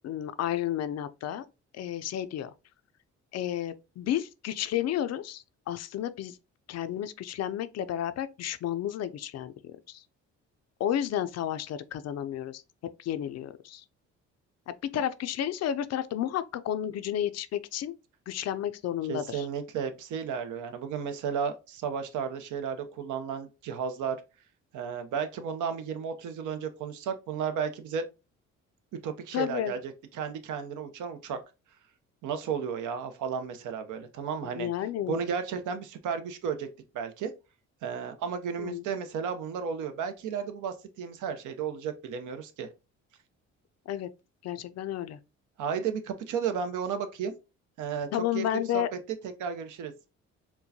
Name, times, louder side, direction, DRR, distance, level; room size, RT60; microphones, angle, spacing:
voice 1, 0.0-1.4 1.7-2.5 3.3-6.4 6.7-9.5 9.9-10.0 10.8-12.6 13.0-13.8 14.7-17.9 18.3-19.5 29.3-29.7 34.5-35.2 38.6-38.9 43.9-44.1 44.4-45.2 48.1-48.9, left 11 dB, 60° left, 0.4 m, -32 dB
voice 2, 19.1-24.2 24.7-28.0 29.0-31.4 32.2-34.7 35.1-36.7 36.9-37.3 37.8-42.7 45.6-47.3 47.8-48.8 49.2-49.9, right 7 dB, 80° right, 0.7 m, -33 dB
4.4 x 2.2 x 2.7 m
cardioid pair, 90°, 30 cm